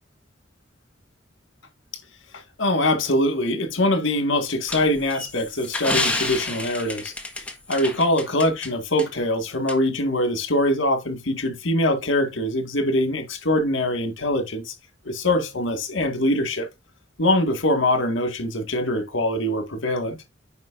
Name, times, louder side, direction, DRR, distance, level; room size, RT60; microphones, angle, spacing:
voice 1, 2.6-7.1 7.7-14.6 15.1-16.7 17.2-20.2, left 1 dB, 80° left, 1.9 m, -23 dB
sound 1, 4.7-8.7 9.0-9.1 9.7-9.8, left 2 dB, 5° left, 1.3 m, -29 dB
9.3 x 5.8 x 2.5 m
head